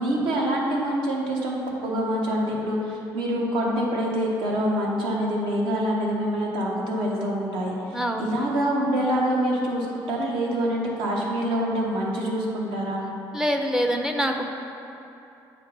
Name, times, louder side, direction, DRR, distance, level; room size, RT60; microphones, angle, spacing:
voice 1, 0.0-13.0, equal, 75° right, -2 dB, 1.1 m, -26 dB
voice 2, 7.9-8.3 13.3-14.5, equal, 5° right, 3 dB, 0.4 m, -25 dB
7.3 x 2.9 x 5.3 m, 2.8 s
cardioid pair, 105°, 9 cm